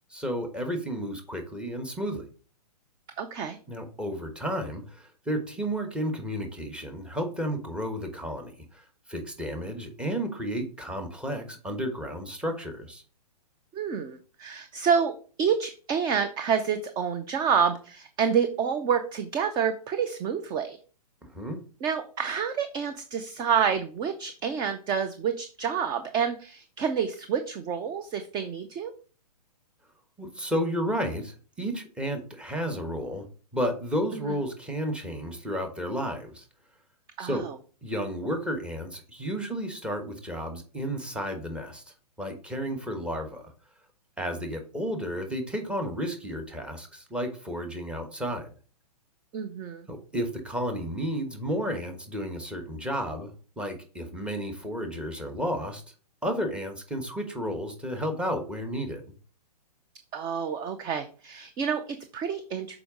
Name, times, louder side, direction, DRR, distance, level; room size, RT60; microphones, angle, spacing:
voice 1, 0.1-2.3 3.7-8.8 9.1-13.0 21.2-21.6 30.2-33.2 33.5-36.4 37.2-37.4 37.8-41.8 42.2-43.5 44.2-48.5 49.9-53.3 53.6-55.8 56.2-59.0, equal, 5° right, 4 dB, 1.1 m, -32 dB
voice 2, 3.2-3.6 13.7-15.1 15.4-20.8 21.8-28.9 34.2-34.4 37.2-37.6 49.3-49.9 60.1-62.8, right 7 dB, 20° right, 8 dB, 0.5 m, -28 dB
6.8 x 4.8 x 3.7 m, 0.39 s
hypercardioid pair, 130°, 21 cm